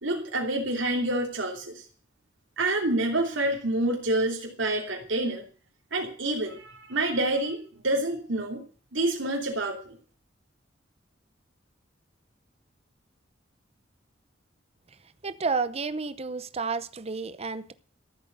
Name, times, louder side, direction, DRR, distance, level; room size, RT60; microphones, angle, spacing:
voice 1, 0.0-1.8 2.6-5.4 5.9-8.6 8.9-9.9, right 1 dB, 80° right, 0 dB, 3.1 m, -28 dB
voice 2, 15.2-17.7, right 4 dB, 35° right, 14 dB, 0.8 m, -31 dB
14.5 x 8.2 x 8.2 m, 0.42 s
head